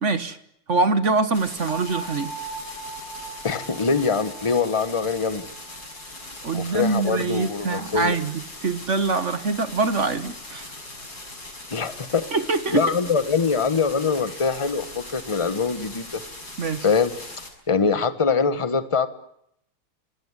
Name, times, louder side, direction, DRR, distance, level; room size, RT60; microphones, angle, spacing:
voice 1, 0.0-0.4 0.7-2.3 6.4-10.6 12.3-12.9 16.6-16.9, right 3 dB, 40° right, 12 dB, 1.4 m, -24 dB
sound 1, 1.3-17.5, left 2 dB, 45° left, 6.6 m, -40 dB
sound 2, 1.7-7.5, right 3 dB, 75° left, 4.1 m, -40 dB
voice 2, 3.4-5.5 6.5-8.2 11.7-12.3 12.7-16.2 16.8-17.1 17.7-19.1, left 5 dB, 20° left, 11 dB, 1.1 m, -23 dB
26.0 x 20.0 x 9.8 m, 0.75 s
omnidirectional pair, 2.4 m